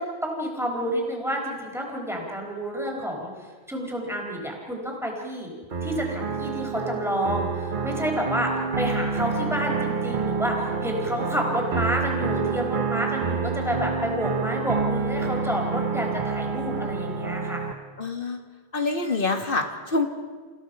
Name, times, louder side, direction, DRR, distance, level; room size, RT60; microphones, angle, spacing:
voice 1, 0.0-5.5 5.8-17.6, equal, ahead, -1 dB, 4.3 m, -29 dB
sound 1, 5.7-17.7, right 5 dB, 50° right, 1.1 m, -28 dB
voice 2, 18.0-18.4 18.7-20.1, left 3 dB, 55° left, 5 dB, 2.0 m, -26 dB
29.5 x 16.5 x 5.6 m, 1.5 s
omnidirectional pair, 1.1 m